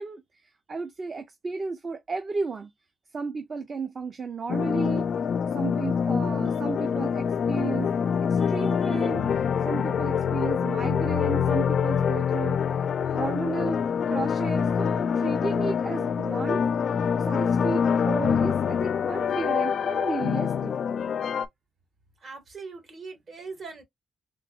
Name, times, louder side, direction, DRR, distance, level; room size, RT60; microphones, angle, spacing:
voice 1, 0.0-2.7 3.1-5.1 5.5-7.9 8.2-9.2 9.6-12.6 13.1-13.8 14.1-16.6 17.2-20.8, right 4 dB, 35° right, 0.5 m, -33 dB
sound 1, 4.5-21.5, left 7 dB, 55° left, 0.3 m, -25 dB
voice 2, 22.2-23.8, right 4 dB, 50° right, 1.7 m, -41 dB
3.9 x 3.3 x 2.3 m
wide cardioid pair, 170°, 0 cm